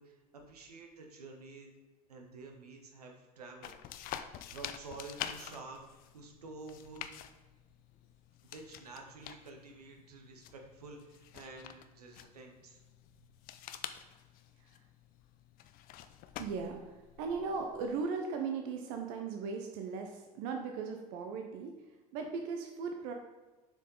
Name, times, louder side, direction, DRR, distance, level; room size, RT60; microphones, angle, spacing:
voice 1, 0.0-1.7 2.1-4.1 4.5-7.1 8.4-12.8, right 3 dB, 85° right, 2 dB, 1.0 m, -50 dB
sound 1, 3.6-18.0, left 11 dB, 50° left, 0.5 m, -48 dB
voice 2, 16.4-23.1, right 5 dB, 60° right, 3 dB, 0.7 m, -38 dB
6.9 x 4.7 x 3.9 m, 1.2 s
hypercardioid pair, 70°, 19 cm